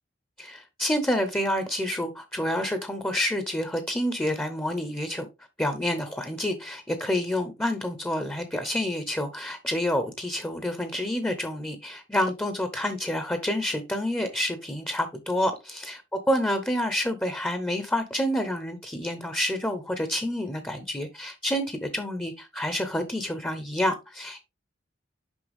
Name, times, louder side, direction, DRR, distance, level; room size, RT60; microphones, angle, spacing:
voice 1, 0.4-5.3 5.6-16.0 16.3-24.4, left 1 dB, 10° left, 0.7 m, -28 dB
6.2 x 5.5 x 3.4 m
head